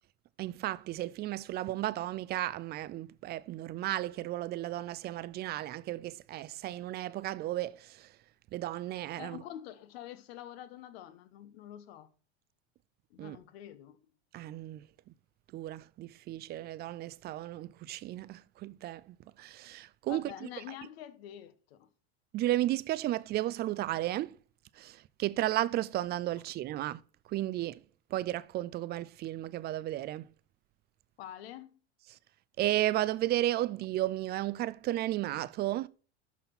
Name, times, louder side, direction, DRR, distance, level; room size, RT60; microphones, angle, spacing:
voice 1, 0.4-8.2 8.5-9.4 13.2-13.4 14.3-14.9 15.5-20.5 22.3-24.4 24.7-27.0 27.3-27.8 28.1-30.3 32.1-32.2 32.6-35.9, right 15 dB, 30° right, 0.4 m, -34 dB
voice 2, 9.2-12.1 13.1-14.0 20.1-21.9 31.2-31.8, left 12 dB, 70° left, 1.3 m, -46 dB
12.0 x 4.2 x 6.0 m
supercardioid pair, 115°, 32 cm